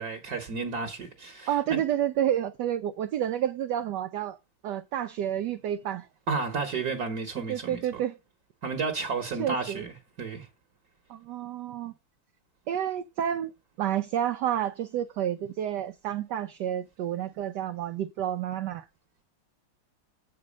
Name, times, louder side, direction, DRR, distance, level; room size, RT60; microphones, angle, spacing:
voice 1, 0.0-1.8 6.3-7.8 8.6-10.5, right 4 dB, 55° right, 1.5 m, -32 dB
voice 2, 1.5-4.4 4.6-6.1 7.5-8.2 9.4-9.8 11.1-11.9 12.7-13.5 13.8-18.9, right 10 dB, 75° right, 1.0 m, -30 dB
7.8 x 5.3 x 4.9 m
omnidirectional pair, 2.2 m